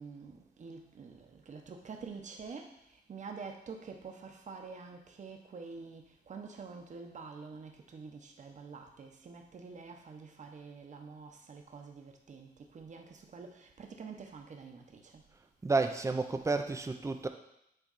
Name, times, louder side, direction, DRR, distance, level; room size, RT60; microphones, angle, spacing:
voice 1, 0.0-2.8 3.1-15.2, right 5 dB, 45° right, 3 dB, 0.9 m, -47 dB
voice 2, 15.6-17.3, right 3 dB, 15° right, 6 dB, 0.6 m, -31 dB
9.0 x 3.3 x 4.1 m, 0.80 s
cardioid pair, 105°, 17 cm